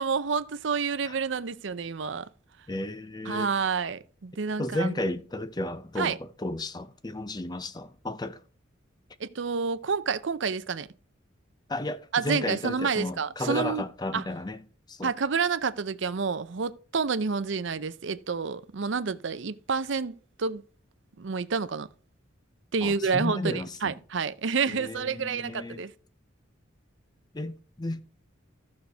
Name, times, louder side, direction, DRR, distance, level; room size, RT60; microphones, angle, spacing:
voice 1, 0.0-2.3 3.3-5.0 6.0-6.2 9.2-10.9 12.1-13.8 14.1-14.2 15.0-20.6 21.2-21.9 22.7-25.9, right 5 dB, 65° right, 0.6 m, -29 dB
voice 2, 2.7-3.5 4.6-8.4 11.7-14.6 14.9-15.1 22.8-24.0 24.7-25.8 27.3-28.0, left 1 dB, 20° left, 0.6 m, -33 dB
14.5 x 6.5 x 3.4 m
head